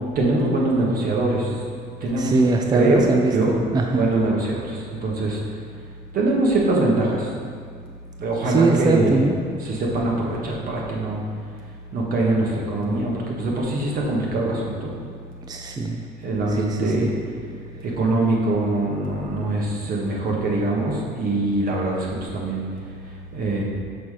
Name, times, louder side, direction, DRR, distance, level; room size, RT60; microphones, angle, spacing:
voice 1, 0.2-1.4 2.0-2.4 2.7-3.0 3.3-3.5 4.0-4.6 5.0-5.4 6.1-7.2 8.2-9.1 9.6-11.2 11.9-13.1 13.4-14.9 16.2-17.1 18.0-22.1 22.3-22.6 23.3-23.6, right 2 dB, 60° right, -2 dB, 1.7 m, -22 dB
voice 2, 2.2-4.1 8.4-9.4 15.4-16.0 16.5-17.1, right 3 dB, 25° right, 3 dB, 0.5 m, -22 dB
6.0 x 5.9 x 4.9 m, 2.1 s
cardioid pair, 110°, 17 cm